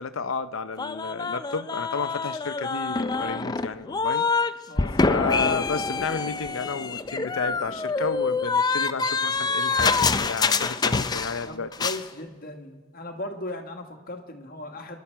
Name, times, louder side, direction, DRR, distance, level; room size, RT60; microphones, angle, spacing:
voice 1, 0.0-4.2 5.1-11.7, left 4 dB, 75° left, 12 dB, 0.6 m, -32 dB
sound 1, 0.8-4.5 4.8-11.5 11.7-12.0, left 4 dB, 20° left, 0.4 m, -26 dB
voice 2, 4.7-5.1 11.4-15.0, left 1 dB, 45° left, 4 dB, 1.7 m, -37 dB
25.0 x 11.5 x 4.6 m, 1.3 s
head